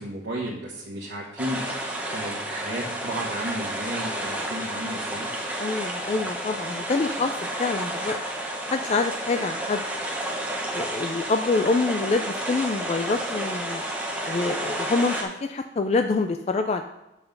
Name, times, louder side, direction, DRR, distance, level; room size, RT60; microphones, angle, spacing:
voice 1, 0.0-1.6 2.1-5.3, equal, 65° right, -5 dB, 1.3 m, -33 dB
sound 1, 1.4-15.2, right 1 dB, 10° right, 1.0 m, -31 dB
voice 2, 5.6-7.3 7.6-8.2 8.7-9.8 10.7-13.8 14.2-16.8, left 3 dB, 35° left, 7 dB, 0.3 m, -26 dB
7.9 x 5.7 x 5.3 m, 0.96 s
head